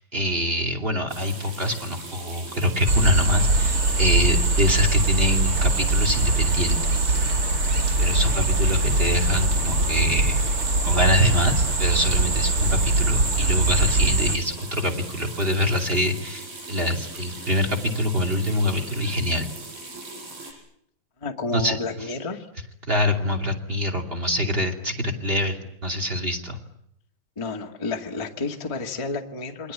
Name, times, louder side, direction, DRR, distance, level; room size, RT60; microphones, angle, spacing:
voice 1, 0.0-7.1 8.0-10.4 10.8-19.5 21.5-21.8 22.9-26.6, left 1 dB, 20° right, 3 dB, 1.9 m, -24 dB
sound 1, 1.1-20.5, right 2 dB, 60° right, 7.1 m, -40 dB
sound 2, 2.9-14.4, right 2 dB, 45° right, 1.2 m, -22 dB
voice 2, 21.2-22.5 27.3-29.7, left 3 dB, 50° left, 2 dB, 0.3 m, -31 dB
28.5 x 23.0 x 8.7 m, 0.73 s
omnidirectional pair, 4.7 m